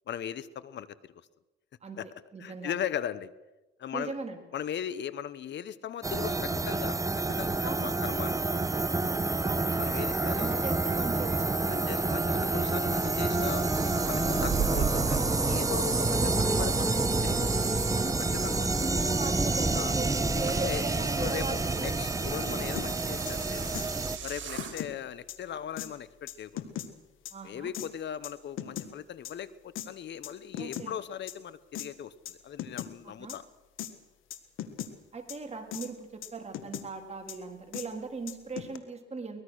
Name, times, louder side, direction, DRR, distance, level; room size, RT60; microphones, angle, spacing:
voice 1, 0.1-1.1 2.0-2.1 2.4-3.3 3.8-4.2 4.5-7.0 7.3-8.7 9.8-10.5 11.7-13.6 14.1-17.8 18.4-18.7 19.7-19.9 20.5-20.9 21.2-23.8 24.2-26.7 27.4-33.4, left 9 dB, 65° left, 17 dB, 1.1 m, -38 dB
voice 2, 2.3-2.7 3.9-4.4 7.6-7.9 9.4-9.7 10.3-11.7 17.9-18.3 18.8-21.9 22.3-23.0 27.3-27.7 30.6-31.0 33.0-33.4 35.1-39.4, right 4 dB, 35° right, 3 dB, 3.8 m, -39 dB
sound 1, 6.0-24.2, right 3 dB, 15° right, 1.1 m, -28 dB
sound 2, 12.8-24.8, right 8 dB, 70° right, 4.6 m, -39 dB
sound 3, 22.8-22.9 23.3-23.4 23.7-23.9 24.3-24.9 25.3-25.4 25.8-25.9 26.3-26.9 27.2-27.3 27.7-27.9 28.2-28.9 29.2-29.3 29.7-29.9 30.2-30.9 31.3-31.4 31.7-31.9 32.3-32.4 32.6-32.9 33.3-33.4 33.8-33.9 34.3-34.9 35.3-35.4 35.7-35.9 36.2-36.9 37.3-37.4 37.7-37.9 38.3-38.8, left 11 dB, 85° left, 1.7 m, -38 dB
23.5 x 20.0 x 6.5 m, 1.1 s
cardioid pair, 90°, 20 cm